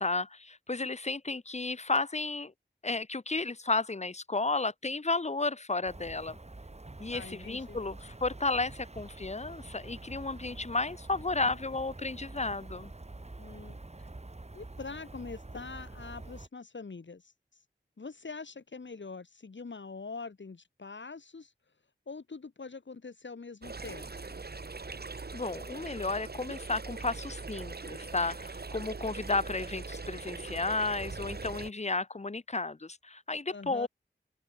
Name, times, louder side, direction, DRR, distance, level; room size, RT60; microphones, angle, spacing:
voice 1, 0.0-2.5 2.8-6.4 7.0-12.9 25.3-33.9, left 3 dB, 35° left, 1.0 m, -33 dB
sound 1, 5.9-16.5, right 2 dB, 35° right, 2.2 m, -47 dB
voice 2, 7.1-7.8 13.4-14.1 14.5-17.3 18.0-21.5 22.1-24.4 33.5-33.9, left 4 dB, 75° left, 2.5 m, -44 dB
sound 2, 23.6-31.7, right 3 dB, 55° right, 1.7 m, -41 dB
open air
wide cardioid pair, 65°, 19 cm